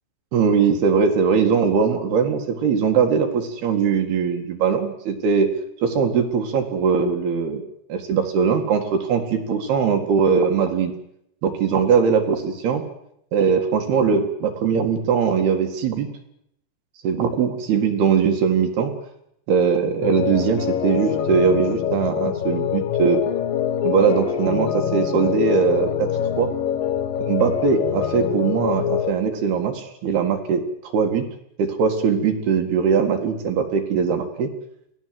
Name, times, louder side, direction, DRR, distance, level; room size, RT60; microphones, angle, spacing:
voice 1, 0.3-5.5 5.8-7.6 7.9-10.9 11.4-12.8 13.3-16.1 17.0-18.9 19.5-23.2 23.8-26.5 27.2-31.3 31.6-34.5, right 6 dB, 65° right, 4 dB, 3.7 m, -21 dB
sound 1, 20.0-29.1, left 10 dB, 65° left, 2.6 m, -24 dB
27.5 x 18.5 x 7.8 m, 0.76 s
omnidirectional pair, 5.1 m